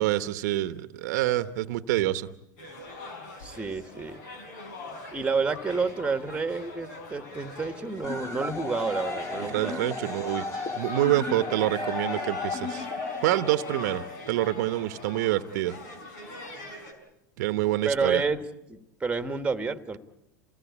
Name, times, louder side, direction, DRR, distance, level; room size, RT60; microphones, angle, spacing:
voice 1, 0.0-2.3 9.4-10.5 10.8-12.9 13.2-15.8 17.4-18.2, right 15 dB, 70° right, 13 dB, 1.0 m, -27 dB
sound 1, 2.6-16.9, left 2 dB, 75° left, 5.5 m, -41 dB
voice 2, 3.4-4.2 5.1-10.3 17.8-18.4 18.7-20.0, right 4 dB, 10° right, 10 dB, 1.6 m, -30 dB
sound 2, 8.0-14.0, left 4 dB, 30° left, 2.7 m, -35 dB
27.5 x 17.5 x 8.4 m, 0.89 s
hypercardioid pair, 105°, 10 cm